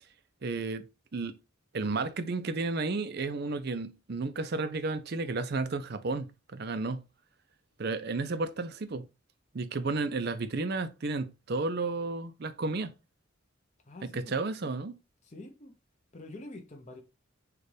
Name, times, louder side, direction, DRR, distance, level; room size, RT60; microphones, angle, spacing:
voice 1, 0.4-0.9 1.1-1.3 1.7-7.1 7.8-9.1 9.5-12.9 14.0-14.9, right 3 dB, 55° right, 0.5 m, -32 dB
voice 2, 13.9-14.4 14.6-14.7 15.2-15.7 16.1-17.0, left 2 dB, 35° left, 0.8 m, -46 dB
6.6 x 2.4 x 3.3 m
head